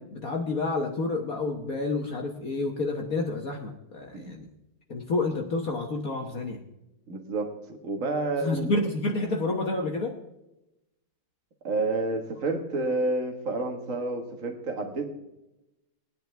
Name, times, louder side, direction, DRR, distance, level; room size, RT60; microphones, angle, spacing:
voice 1, 0.0-4.5 4.9-6.6 8.4-10.1, left 2 dB, 50° left, 1 dB, 1.4 m, -29 dB
voice 2, 7.1-7.5 7.8-8.7 11.6-15.1, right 3 dB, 40° right, 4 dB, 1.9 m, -29 dB
19.5 x 10.0 x 3.4 m, 0.93 s
omnidirectional pair, 2.3 m